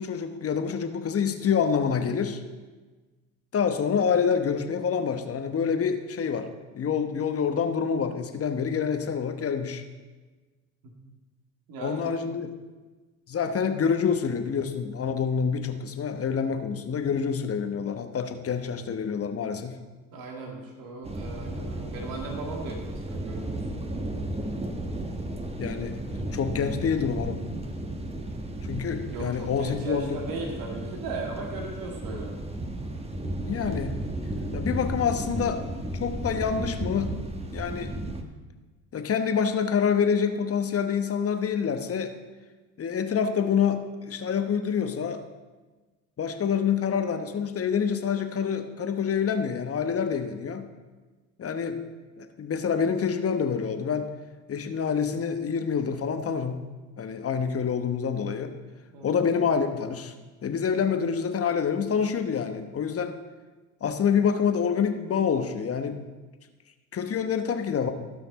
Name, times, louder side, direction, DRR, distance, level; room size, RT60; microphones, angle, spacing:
voice 1, 0.0-2.4 3.5-6.5 6.7-9.8 11.8-12.6 13.3-19.8 25.6-26.0 26.3-27.4 28.6-30.2 33.4-34.0 34.5-35.6 36.0-37.2 37.5-38.0 38.9-42.1 42.8-45.2 46.2-50.7 51.4-51.8 52.2-54.1 54.5-56.6 57.0-58.5 59.0-60.1 60.4-63.2 63.8-66.0 66.9-67.9, left 6 dB, 35° left, 8 dB, 1.1 m, -27 dB
voice 2, 11.7-12.1 20.1-23.9 29.1-32.4 58.9-59.2, right 3 dB, 55° right, 1 dB, 2.1 m, -37 dB
sound 1, 21.0-38.2, right 1 dB, 15° right, 1.3 m, -34 dB
16.5 x 5.8 x 4.1 m, 1.3 s
hypercardioid pair, 75°, 40 cm